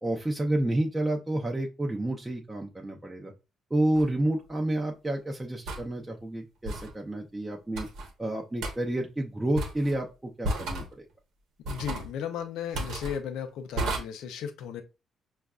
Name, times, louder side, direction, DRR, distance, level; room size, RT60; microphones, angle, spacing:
voice 1, 0.0-3.3 3.7-7.9 8.2-10.1 10.4-11.0, right 1 dB, 15° right, 0 dB, 0.6 m, -29 dB
sound 1, 3.9-4.1 5.7-5.9 6.6-6.9 7.7-8.1 8.6-8.7 9.6-10.0 10.4-10.9 11.6-12.1 12.7-13.2 13.8-14.0, right 1 dB, 85° right, 0.9 m, -32 dB
voice 2, 11.7-14.8, left 8 dB, 90° left, 8 dB, 0.5 m, -35 dB
5.1 x 2.4 x 2.3 m, 0.29 s
cardioid pair, 90°, 0 cm